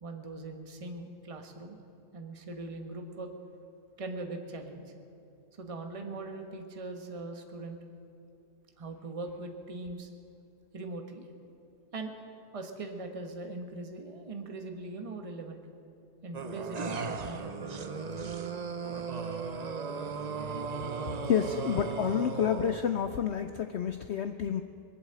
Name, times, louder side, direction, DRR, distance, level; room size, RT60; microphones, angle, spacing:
voice 1, 0.0-1.8 2.1-3.3 4.0-4.9 5.6-7.8 8.8-10.1 10.7-11.3 11.9-12.1 12.5-15.6 16.2-18.3, right 2 dB, 25° right, 4 dB, 1.1 m, -41 dB
sound 1, 16.3-23.0, right 5 dB, 50° right, 0.5 m, -36 dB
voice 2, 21.2-24.6, left 8 dB, 70° left, 9 dB, 0.6 m, -29 dB
21.5 x 8.1 x 7.8 m, 2.6 s
omnidirectional pair, 1.7 m